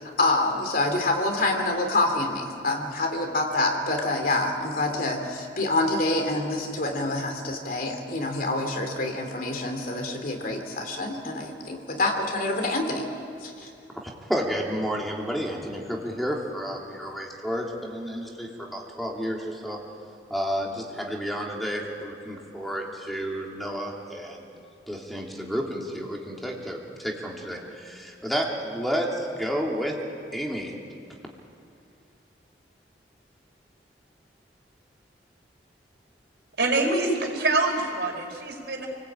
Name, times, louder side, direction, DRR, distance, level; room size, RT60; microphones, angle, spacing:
voice 1, 0.0-13.0 13.4-13.7, left 2 dB, 50° left, 3 dB, 3.1 m, -26 dB
voice 2, 13.9-19.8 20.3-24.5 24.9-30.0 30.3-30.7, equal, ahead, -1 dB, 3.0 m, -31 dB
voice 3, 36.6-38.9, right 2 dB, 65° right, 1 dB, 4.7 m, -25 dB
28.5 x 20.0 x 8.8 m, 2.4 s
head